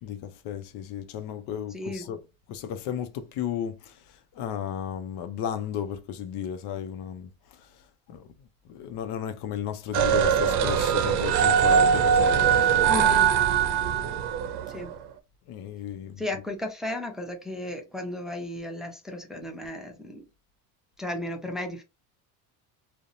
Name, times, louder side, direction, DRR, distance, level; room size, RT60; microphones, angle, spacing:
voice 1, 0.0-2.2 2.5-4.0 4.4-7.6 8.1-8.3 8.7-13.1 14.7-14.8 15.5-16.2, left 9 dB, 65° left, 0.6 m, -34 dB
voice 2, 1.7-2.1 12.8-13.3 14.7-14.9 16.2-20.3 21.0-21.8, left 1 dB, ahead, 0.6 m, -34 dB
sound 1, 9.9-14.8, right 7 dB, 65° right, 0.6 m, -21 dB
2.6 x 2.1 x 2.5 m
supercardioid pair, 85°, 43 cm